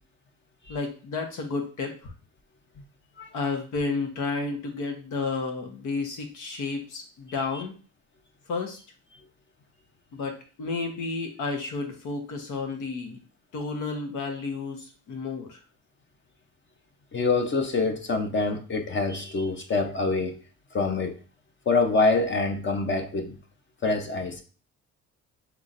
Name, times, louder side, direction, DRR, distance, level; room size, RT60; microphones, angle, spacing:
voice 1, 0.7-2.1 3.3-7.7 8.5-8.8 10.1-13.2 13.5-15.6, left 4 dB, 85° left, 1.2 m, -31 dB
voice 2, 17.1-20.4 20.7-21.2 21.7-23.4 23.8-24.4, left 3 dB, 40° left, 0.8 m, -25 dB
5.8 x 3.2 x 2.6 m
cardioid pair, 90°, 30 cm